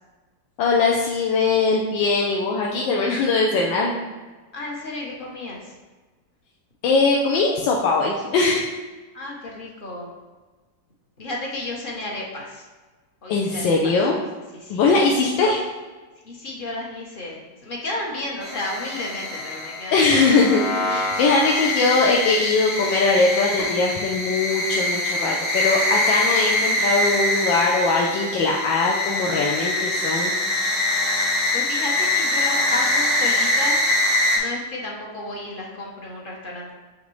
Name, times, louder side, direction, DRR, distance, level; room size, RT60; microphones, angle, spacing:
voice 1, 0.6-4.0 6.8-8.7 13.3-14.2 14.7-15.6 19.9-30.7, left 3 dB, 85° left, -2 dB, 1.4 m, -21 dB
voice 2, 4.5-5.7 9.1-10.1 11.2-12.7 13.2-13.9 14.5-14.8 16.2-20.2 31.5-33.8 34.3-36.7, left 2 dB, 50° left, -1 dB, 0.6 m, -32 dB
sound 1, 18.4-34.4, left 1 dB, 70° left, 2.1 m, -24 dB
6.5 x 5.0 x 3.1 m, 1.2 s
omnidirectional pair, 2.0 m